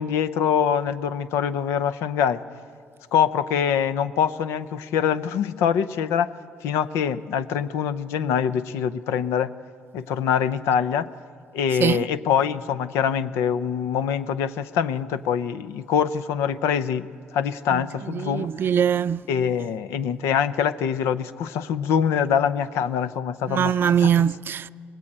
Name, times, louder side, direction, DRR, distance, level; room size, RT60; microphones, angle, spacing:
voice 1, 0.0-2.4 3.1-6.3 6.6-9.5 9.9-11.1 11.5-17.1 17.3-18.5 19.3-24.2, left 8 dB, 85° left, 0.7 m, -24 dB
voice 2, 17.7-19.2 23.5-24.7, right 8 dB, 55° right, 0.5 m, -22 dB
24.0 x 20.0 x 8.8 m
cardioid pair, 80°, 5 cm